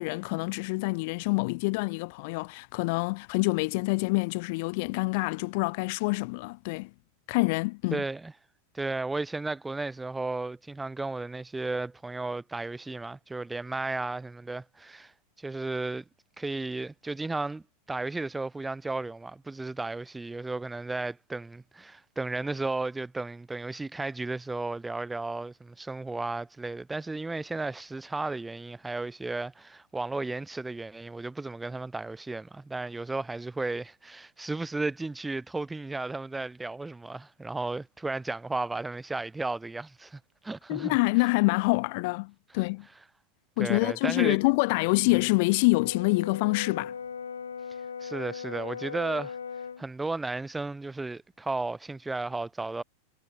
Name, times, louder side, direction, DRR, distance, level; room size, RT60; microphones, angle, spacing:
voice 1, 0.0-6.9 7.3-8.0 40.7-42.9 43.6-46.9, left 27 dB, 50° left, 3.2 m, -26 dB
voice 2, 7.9-8.3 8.7-15.1 15.4-16.0 16.4-17.6 17.9-41.0 43.6-44.4 45.1-45.2 48.0-49.4 49.8-52.8, right 3 dB, 10° right, 7.4 m, -34 dB
Brass instrument, 45.6-49.8, left 6 dB, 70° left, 2.5 m, -39 dB
figure-of-eight pair, 90°, 0 cm